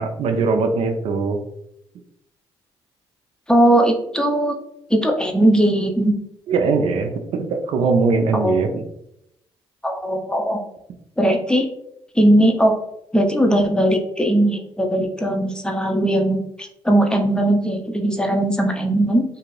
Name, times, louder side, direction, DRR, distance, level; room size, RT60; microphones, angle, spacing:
voice 1, 0.0-1.4 6.5-8.8, right 4 dB, 70° right, 5 dB, 0.4 m, -21 dB
voice 2, 3.5-4.6 4.9-6.1 8.3-8.7 9.8-10.6 11.2-11.7 12.2-12.7 13.1-19.2, right 1 dB, 10° left, 3 dB, 0.6 m, -19 dB
2.6 x 2.4 x 3.2 m, 0.78 s
supercardioid pair, 65°, 10 cm